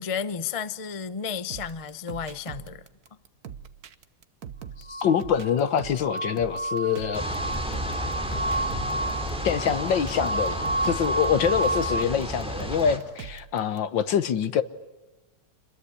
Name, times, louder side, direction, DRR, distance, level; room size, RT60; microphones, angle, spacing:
voice 1, 0.0-2.8, left 7 dB, 45° left, 0.4 m, -32 dB
sound 1, 1.5-13.8, right 8 dB, 55° right, 1.4 m, -42 dB
voice 2, 4.9-7.2 9.4-14.6, left 8 dB, 65° left, 1.8 m, -25 dB
sound 2, 4.9-12.0, right 1 dB, 20° right, 1.0 m, -31 dB
sound 3, 7.1-13.0, equal, 5° right, 3.6 m, -32 dB
27.0 x 21.5 x 9.9 m
omnidirectional pair, 2.2 m